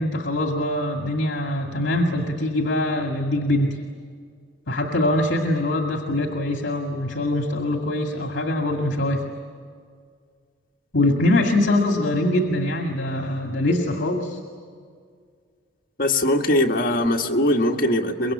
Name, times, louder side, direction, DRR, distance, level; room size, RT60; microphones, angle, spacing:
voice 1, 0.0-3.8 4.7-9.3 10.9-14.4, left 1 dB, 65° left, 3 dB, 2.0 m, -23 dB
voice 2, 16.0-18.3, left 1 dB, 45° left, 0 dB, 1.8 m, -21 dB
24.5 x 22.5 x 8.7 m, 2.1 s
head